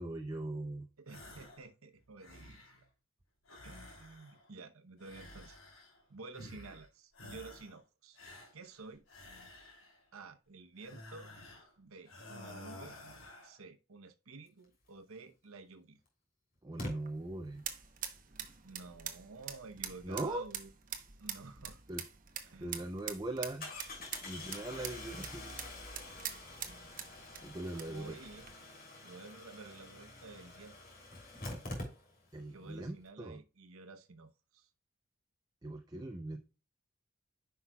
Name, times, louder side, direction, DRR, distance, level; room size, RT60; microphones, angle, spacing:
voice 1, 0.0-0.9 16.6-17.6 20.0-20.4 21.9-22.0 22.6-23.7 24.2-25.6 27.4-28.2 32.3-33.4 35.6-36.4, right 2 dB, 20° right, 0.5 m, -40 dB
voice 2, 1.0-2.6 3.6-5.6 6.1-8.2 8.5-9.1 10.1-11.3 11.8-13.0 13.4-16.0 18.6-20.7 21.2-21.8 22.4-22.9 27.7-28.5 29.0-30.8 32.4-34.7, right 3 dB, 85° right, 0.9 m, -51 dB
sound 1, 1.1-1.7 2.0-2.9 3.4-4.5 5.0-6.0 6.3-6.9 7.1-7.8 8.1-10.0 10.8-11.7 12.0-13.6, left 1 dB, 75° left, 2.8 m, -52 dB
Engine starting, 15.3-15.4 16.8-16.9 22.0-22.1 22.4-22.5 23.6-32.4 32.7-32.8 33.0-33.1, left 1 dB, 45° left, 3.1 m, -46 dB
sound 2, 16.9-28.5, right 9 dB, 40° right, 0.9 m, -46 dB
9.9 x 5.7 x 2.3 m
head